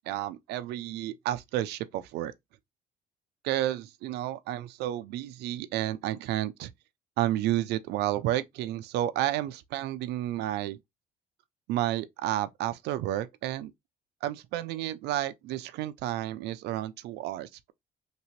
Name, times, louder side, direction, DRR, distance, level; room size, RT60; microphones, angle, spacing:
voice 1, 0.1-2.3 3.4-6.7 7.2-10.8 11.7-13.7 14.2-17.7, right 13 dB, 80° right, 0.4 m, -31 dB
2.9 x 2.8 x 2.8 m
cardioid pair, 110°, 17 cm